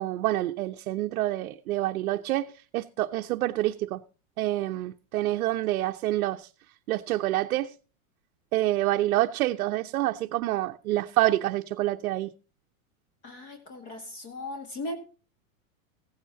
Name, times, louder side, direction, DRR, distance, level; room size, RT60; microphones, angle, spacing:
voice 1, 0.0-4.0 4.4-6.5 6.9-7.7 8.5-12.3, right 15 dB, 80° right, 0.8 m, -27 dB
voice 2, 13.2-14.9, left 2 dB, 35° left, 2.0 m, -37 dB
15.5 x 9.4 x 2.8 m
supercardioid pair, 165°, 43 cm